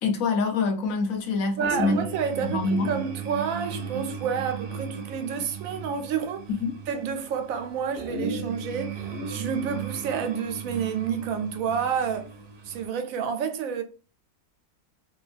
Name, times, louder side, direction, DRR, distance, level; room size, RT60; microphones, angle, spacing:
voice 1, 0.0-2.0 2.4-2.9 6.6-6.7, left 4 dB, 80° left, 1.1 m, -25 dB
sound 1, 1.6-12.9, right 4 dB, 55° right, 0.9 m, -36 dB
voice 2, 1.6-6.5 6.9-12.3 12.6-13.8, right 7 dB, 80° right, 1.0 m, -29 dB
2.9 x 2.2 x 2.4 m
omnidirectional pair, 1.4 m